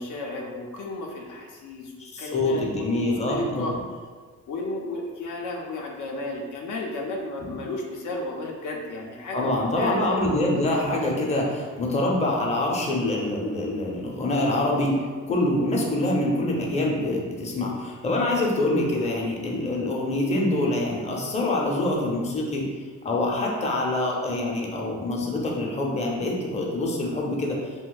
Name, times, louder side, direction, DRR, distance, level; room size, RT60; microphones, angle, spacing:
voice 1, 0.0-3.7 4.5-10.2, left 2 dB, 75° left, 0 dB, 0.6 m, -33 dB
voice 2, 2.0-3.8 7.4-7.6 9.3-22.7 23.0-27.6, left 1 dB, 20° left, -2 dB, 0.6 m, -25 dB
2.5 x 2.2 x 3.8 m, 1.5 s
cardioid pair, 90°, 30 cm